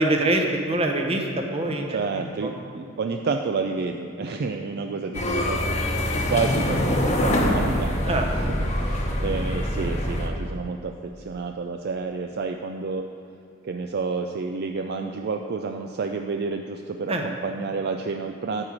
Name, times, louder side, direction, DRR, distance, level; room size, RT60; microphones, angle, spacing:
voice 1, 0.0-2.5 8.1-8.3 17.1-17.2, right 2 dB, 30° right, 2 dB, 0.9 m, -24 dB
voice 2, 1.9-13.1 13.6-18.6, right 4 dB, 50° right, 5 dB, 0.4 m, -30 dB
sound 1, 5.1-10.3, left 1 dB, 35° left, 1.0 m, -24 dB
9.8 x 4.8 x 7.4 m, 2.5 s
head